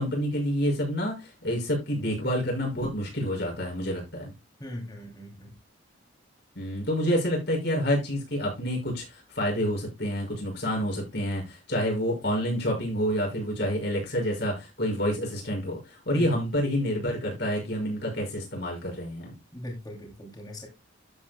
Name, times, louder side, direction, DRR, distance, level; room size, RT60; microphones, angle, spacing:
voice 1, 0.0-4.3 6.6-19.3, equal, 55° left, 6.0 m, -28 dB
voice 2, 4.6-5.5 16.1-16.3 19.5-20.7, left 1 dB, 20° left, 2.8 m, -39 dB
13.0 x 8.2 x 2.2 m
head